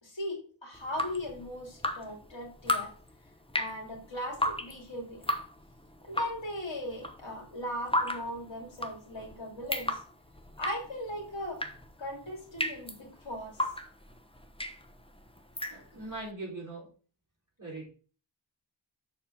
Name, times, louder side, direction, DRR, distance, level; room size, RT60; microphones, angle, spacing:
voice 1, 0.0-2.9 3.5-5.2 6.0-10.0 10.6-11.6 12.0-13.6, equal, 75° left, 0 dB, 2.8 m, -38 dB
Drip, 0.7-16.2, left 1 dB, 10° left, 0.9 m, -36 dB
voice 2, 15.7-16.9 17.6-17.9, right 2 dB, 40° right, -3 dB, 3.6 m, -40 dB
6.8 x 4.3 x 5.7 m, 0.40 s
wide cardioid pair, 55°, 45 cm